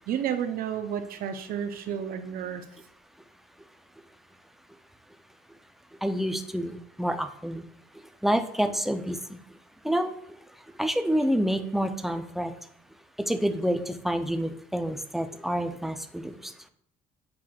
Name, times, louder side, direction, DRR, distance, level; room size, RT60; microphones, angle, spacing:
voice 1, 0.0-2.6, right 8 dB, 60° right, 8 dB, 0.5 m, -31 dB
voice 2, 6.0-7.6 8.2-9.4 9.8-10.1 10.8-12.5 13.2-16.5, equal, ahead, 8 dB, 0.4 m, -28 dB
7.3 x 3.1 x 2.3 m, 0.68 s
cardioid pair, 110°, 17 cm